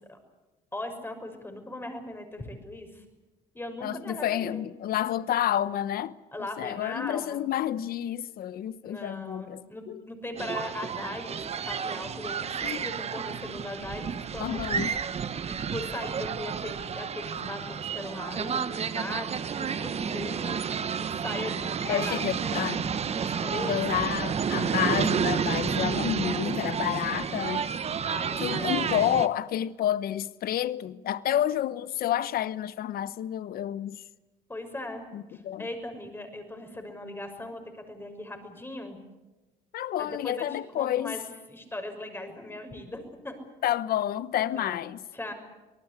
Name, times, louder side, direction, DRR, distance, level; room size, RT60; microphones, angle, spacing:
voice 1, 0.7-3.0 3.5-4.7 6.3-7.4 8.8-11.4 11.6-14.7 15.5-22.7 23.1-24.0 28.0-29.1 34.5-39.0 40.0-41.2 41.5-43.4 44.5-44.9 45.1-45.3, left 1 dB, 15° left, 6.1 m, -39 dB
voice 2, 3.8-6.2 6.6-9.6 9.9-10.0 12.6-12.9 14.4-14.9 21.8-22.8 23.5-27.7 28.4-34.0 35.1-35.7 39.7-41.2 43.6-45.0, left 11 dB, 60° left, 1.0 m, -29 dB
sound 1, 10.4-29.3, right 7 dB, 40° right, 1.3 m, -31 dB
26.0 x 19.5 x 8.4 m
cardioid pair, 110°, 17 cm